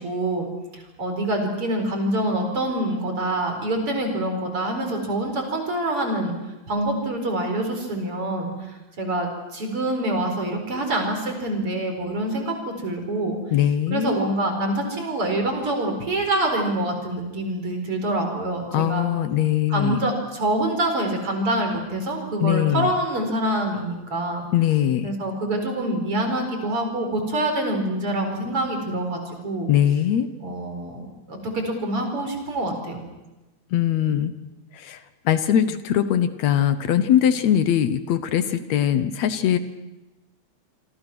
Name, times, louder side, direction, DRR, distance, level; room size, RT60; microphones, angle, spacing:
voice 1, 0.0-6.3 6.7-13.4 13.9-19.1 19.7-24.5 25.0-29.7 30.4-33.0, right 1 dB, 50° right, 4 dB, 5.3 m, -26 dB
voice 2, 13.5-14.1 18.7-20.0 22.4-22.9 24.5-25.1 29.7-30.3 33.7-34.3 34.7-35.0 35.3-39.6, left 10 dB, 70° left, 11 dB, 2.2 m, -21 dB
27.0 x 25.5 x 6.1 m, 1.0 s
omnidirectional pair, 3.3 m